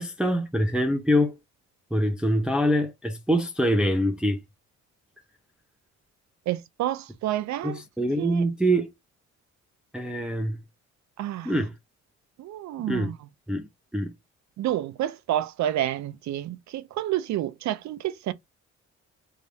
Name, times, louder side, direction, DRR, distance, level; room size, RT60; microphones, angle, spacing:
voice 1, 0.0-1.4 1.9-4.4 7.6-8.9 9.9-10.6 11.4-11.7 12.9-13.1 13.5-13.7 13.9-14.1, equal, 5° right, 0.6 m, -24 dB
voice 2, 6.5-7.8 8.2-8.4 11.2-11.5 12.4-13.1 14.6-18.3, right 12 dB, 65° right, 0.5 m, -29 dB
3.6 x 2.5 x 3.3 m
cardioid pair, 90°, 30 cm